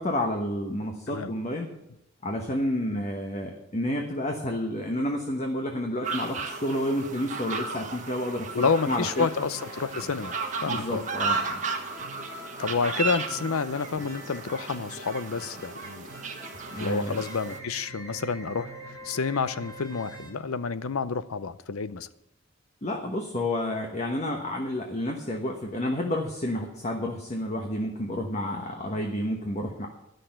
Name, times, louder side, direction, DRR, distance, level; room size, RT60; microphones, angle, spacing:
voice 1, 0.0-1.7 2.2-9.3 10.7-11.6 16.7-17.2 22.8-29.9, left 1 dB, 35° left, 2 dB, 1.2 m, -30 dB
sound 1, 6.0-17.6, right 4 dB, 35° right, 1.4 m, -34 dB
voice 2, 8.5-10.3 10.6-11.0 12.6-16.1 16.8-22.1, left 5 dB, 90° left, 15 dB, 0.6 m, -29 dB
sound 2, 9.3-21.2, right 1 dB, 15° left, 2.5 m, -45 dB
11.5 x 6.5 x 8.9 m, 0.86 s
head